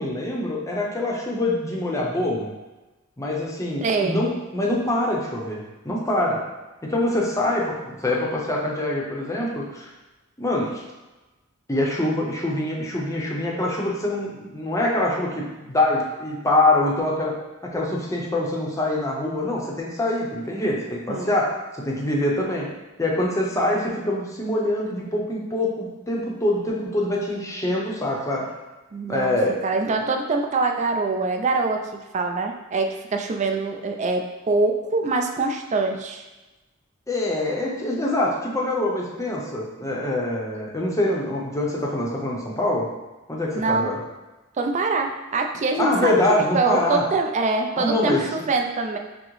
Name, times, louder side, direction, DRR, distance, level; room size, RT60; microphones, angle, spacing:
voice 1, 0.0-2.5 3.2-6.4 6.8-9.9 10.4-10.8 11.7-17.3 17.6-22.7 23.0-28.5 29.1-29.6 37.1-42.9 43.3-44.0 45.8-47.0 47.8-48.2, left 1 dB, 15° left, -3 dB, 0.6 m, -24 dB
voice 2, 3.8-4.2 21.1-21.3 28.9-29.4 29.6-36.2 43.6-43.9 44.6-46.2 46.5-49.0, right 3 dB, 35° right, 4 dB, 0.3 m, -24 dB
6.1 x 2.0 x 3.1 m, 1.1 s
head